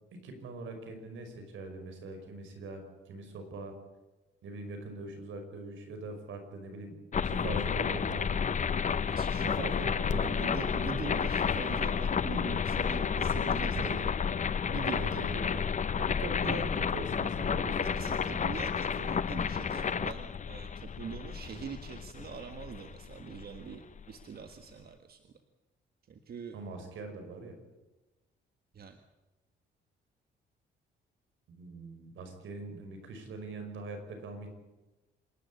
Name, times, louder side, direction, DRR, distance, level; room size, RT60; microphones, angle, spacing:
voice 1, 0.2-3.8 4.4-8.3 9.4-10.4 13.8-14.1 14.9-15.7 16.0-18.6 26.5-27.6 31.5-34.5, right 2 dB, 75° right, 6 dB, 5.4 m, -42 dB
sound 1, 7.1-24.0, left 6 dB, 40° left, 0.9 m, -31 dB
voice 2, 9.1-13.9 14.7-15.2 16.4-16.6 17.8-25.3 26.1-26.6 28.7-29.0, right 6 dB, 50° right, 7 dB, 1.6 m, -43 dB
26.5 x 11.5 x 9.8 m, 1.1 s
cardioid pair, 90°, 20 cm